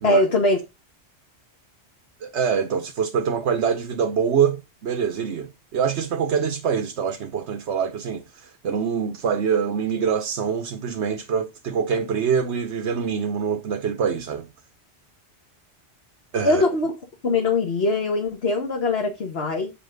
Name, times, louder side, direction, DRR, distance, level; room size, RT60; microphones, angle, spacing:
voice 1, 0.0-0.6 16.4-16.9 17.2-19.7, left 2 dB, 70° left, 1.8 m, -21 dB
voice 2, 2.2-14.5 16.3-16.6, right 7 dB, 85° right, 1.2 m, -25 dB
8.6 x 5.8 x 5.2 m
omnidirectional pair, 1.1 m